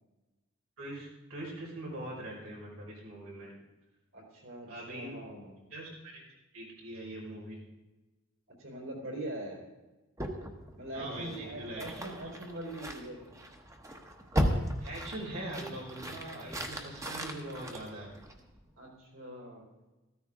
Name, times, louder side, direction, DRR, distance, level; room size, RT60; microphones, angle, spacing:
voice 1, 0.8-3.5 4.7-5.2 5.7-6.2 6.5-7.7 10.9-11.8 12.1-12.2 14.8-18.1, right 1 dB, 85° right, -4 dB, 5.1 m, -42 dB
voice 2, 4.1-5.6 8.6-9.6 10.7-13.2 18.8-19.6, right 1 dB, 65° right, -1 dB, 4.3 m, -42 dB
sound 1, 10.2-18.6, equal, 15° right, 1.0 m, -37 dB
14.5 x 13.5 x 3.7 m, 1.1 s
head